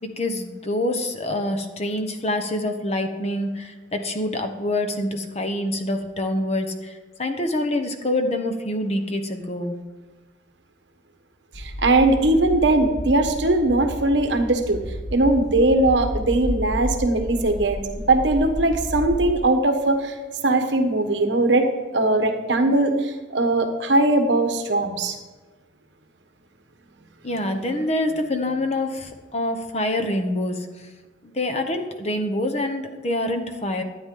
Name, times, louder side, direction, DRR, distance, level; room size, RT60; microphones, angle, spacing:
voice 1, 0.0-9.7 27.2-30.9 31.2-33.8, left 1 dB, 35° left, 6 dB, 1.1 m, -26 dB
sound 1, 11.5-19.3, equal, 70° left, 1.5 m, -31 dB
voice 2, 11.6-14.8 15.1-20.2 20.4-25.2, right 2 dB, 70° right, 6 dB, 1.2 m, -20 dB
12.5 x 9.4 x 3.8 m, 1.3 s
head